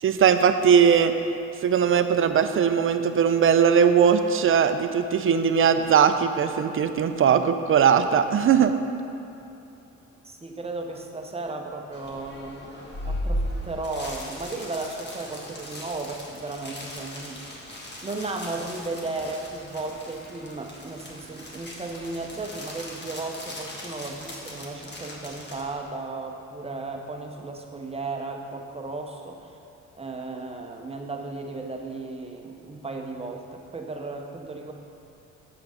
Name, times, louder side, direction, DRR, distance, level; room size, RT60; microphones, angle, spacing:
voice 1, 0.0-1.1 1.6-8.8, right 7 dB, 45° right, 9 dB, 0.5 m, -20 dB
voice 2, 10.2-12.8 13.0-17.4 18.0-29.5 29.9-34.7, right 3 dB, 20° right, 3 dB, 0.8 m, -35 dB
sound 1, 11.9-25.6, equal, 35° left, 1.6 m, -37 dB
7.8 x 5.9 x 5.0 m, 2.8 s
cardioid pair, 90°, 30 cm